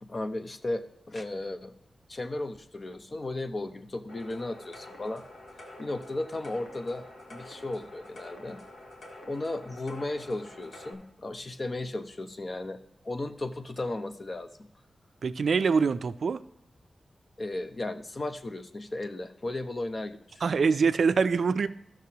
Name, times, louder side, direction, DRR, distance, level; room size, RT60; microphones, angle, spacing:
voice 1, 0.0-0.8 1.1-1.7 2.1-5.2 5.8-7.0 7.3-8.6 9.2-12.8 13.0-14.7 17.4-20.4, left 2 dB, 35° left, 9 dB, 0.5 m, -35 dB
sound 1, 4.1-10.9, left 1 dB, 80° left, 1.5 m, -48 dB
voice 2, 15.2-16.4 20.4-21.7, right 5 dB, 70° right, 13 dB, 0.3 m, -24 dB
13.5 x 6.1 x 2.8 m, 0.82 s
wide cardioid pair, 145°, 0 cm